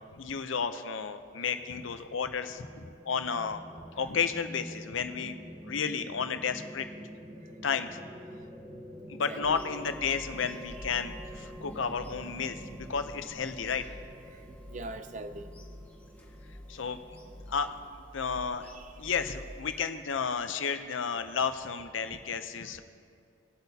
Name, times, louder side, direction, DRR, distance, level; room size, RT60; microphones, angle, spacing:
voice 1, 0.1-3.6 4.0-5.4 5.6-6.9 7.6-7.9 9.1-13.8 16.7-17.0 17.5-18.7 19.0-22.8, left 6 dB, 80° left, 9 dB, 0.6 m, -32 dB
sound 1, 2.0-17.7, equal, 15° right, 1.1 m, -48 dB
voice 2, 9.3-9.6 14.3-15.5 18.7-18.9, right 2 dB, 40° right, 10 dB, 0.5 m, -42 dB
Bird vocalization bird call bird song / Telephone, 9.4-19.6, equal, 10° left, 1.1 m, -49 dB
20.5 x 8.0 x 2.8 m, 2.3 s
head